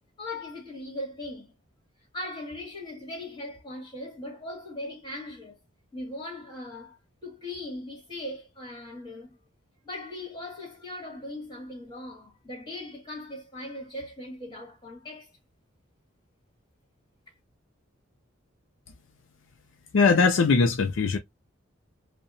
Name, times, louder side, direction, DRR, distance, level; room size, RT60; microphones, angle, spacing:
voice 1, 0.2-1.5 2.1-5.6 5.9-9.4 9.8-15.3, left 1 dB, 20° left, 1.6 m, -39 dB
voice 2, 19.9-21.2, left 4 dB, 70° left, 0.4 m, -20 dB
2.7 x 2.2 x 2.5 m
head